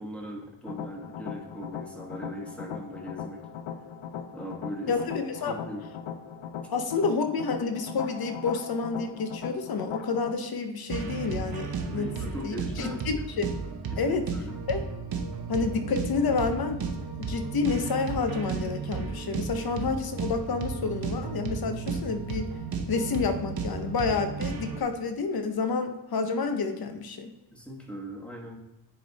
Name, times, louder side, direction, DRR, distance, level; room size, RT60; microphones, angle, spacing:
voice 1, 0.0-3.4 4.3-4.9 5.4-5.8 11.9-13.0 13.9-14.6 26.8-26.9 27.5-28.6, equal, 5° left, 0 dB, 1.3 m, -39 dB
sound 1, 0.7-10.3, left 8 dB, 80° left, 0.7 m, -39 dB
voice 2, 4.9-5.6 6.7-13.5 14.0-14.2 14.7-14.8 15.5-16.8 17.3-22.5 22.9-27.3, left 4 dB, 50° left, 7 dB, 0.8 m, -29 dB
sound 2, 10.9-24.8, right 5 dB, 50° right, 0.9 m, -34 dB
9.9 x 3.4 x 4.0 m, 0.97 s
wide cardioid pair, 105°, 46 cm